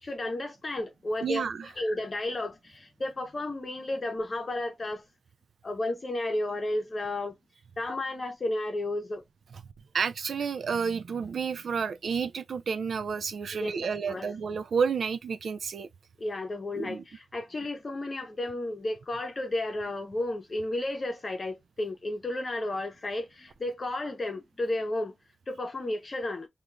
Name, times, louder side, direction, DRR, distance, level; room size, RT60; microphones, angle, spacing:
voice 1, 0.0-1.4 1.8-5.0 5.6-7.4 7.8-9.2 13.5-14.3 16.2-25.1 25.5-26.5, left 1 dB, 35° left, 0.8 m, -33 dB
voice 2, 1.2-1.7 9.9-15.9 16.8-17.0, right 6 dB, 75° right, 0.3 m, -30 dB
2.4 x 2.4 x 3.0 m
wide cardioid pair, 140°, 0 cm